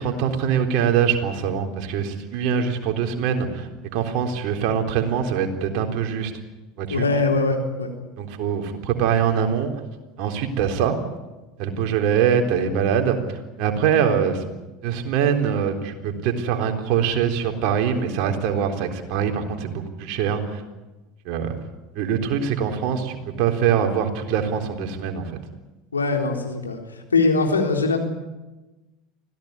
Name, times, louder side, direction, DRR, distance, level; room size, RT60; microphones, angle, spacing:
voice 1, 0.0-3.7 3.9-6.3 6.8-7.0 8.2-9.7 10.2-11.0 11.6-13.2 13.6-14.4 14.8-20.6 21.3-21.5 21.9-25.4, right 7 dB, 55° right, 4 dB, 3.8 m, -23 dB
voice 2, 6.9-7.9 25.9-26.8 27.1-28.0, left 3 dB, 90° left, 2 dB, 3.8 m, -21 dB
25.0 x 17.0 x 9.7 m, 1.1 s
hypercardioid pair, 75°, 0 cm